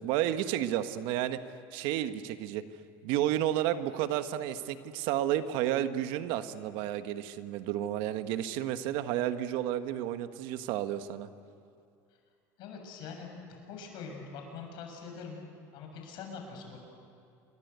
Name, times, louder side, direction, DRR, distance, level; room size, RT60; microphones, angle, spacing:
voice 1, 0.0-1.4 1.7-2.6 3.0-11.3, right 12 dB, 70° right, 10 dB, 1.4 m, -31 dB
voice 2, 12.6-15.4 15.7-16.8, left 5 dB, 65° left, 3 dB, 6.9 m, -43 dB
28.0 x 23.5 x 8.2 m, 2.5 s
supercardioid pair, 115°, 9 cm